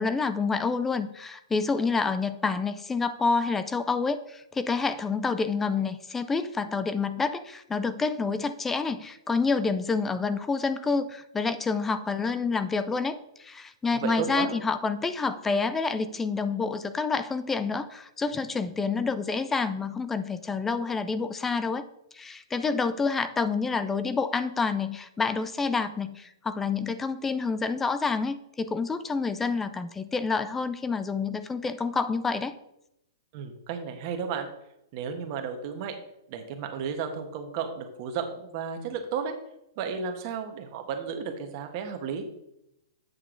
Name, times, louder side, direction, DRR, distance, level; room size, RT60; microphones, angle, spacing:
voice 1, 0.0-21.8 22.1-32.5, left 4 dB, 10° left, 12 dB, 0.4 m, -28 dB
voice 2, 13.9-14.5 33.3-34.5 34.9-36.0 36.3-39.3 39.8-42.2, right 6 dB, 40° right, 5 dB, 1.3 m, -33 dB
8.1 x 6.5 x 3.8 m, 0.83 s
hypercardioid pair, 150°, 2 cm